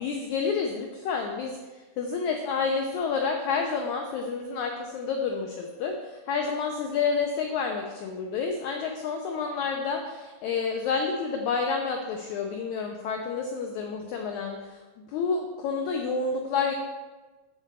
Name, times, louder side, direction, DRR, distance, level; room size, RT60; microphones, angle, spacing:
voice 1, 0.0-14.8 15.1-16.7, left 5 dB, 85° left, 2 dB, 1.6 m, -29 dB
8.4 x 4.2 x 6.7 m, 1.2 s
omnidirectional pair, 4.2 m